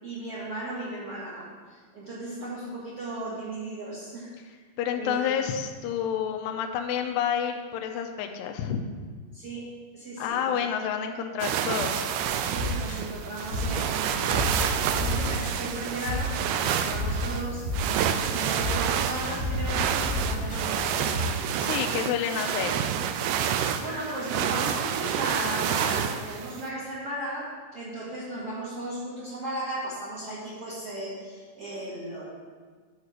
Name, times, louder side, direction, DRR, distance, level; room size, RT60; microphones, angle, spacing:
voice 1, 0.0-4.3 4.9-5.2 9.3-10.8 12.5-17.7 17.9-21.3 23.8-32.2, right 1 dB, 45° right, -7 dB, 2.1 m, -36 dB
voice 2, 4.8-8.8 10.2-12.1 21.6-22.9, left 8 dB, 80° left, 4 dB, 2.5 m, -29 dB
sound 1, 11.4-26.7, right 9 dB, 85° right, 2.5 m, -29 dB
sound 2, 12.2-21.2, equal, 20° left, 1.4 m, -32 dB
11.5 x 4.8 x 6.7 m, 1.5 s
omnidirectional pair, 5.4 m